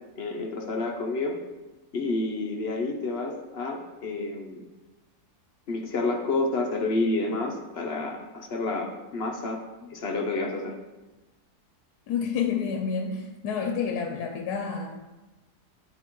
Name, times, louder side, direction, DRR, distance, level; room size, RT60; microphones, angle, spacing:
voice 1, 0.2-1.4 1.9-4.6 5.7-10.7, left 2 dB, 55° left, 2 dB, 0.7 m, -29 dB
voice 2, 12.1-15.0, left 6 dB, 80° left, 4 dB, 1.1 m, -29 dB
9.3 x 4.3 x 3.0 m, 1.1 s
omnidirectional pair, 1.7 m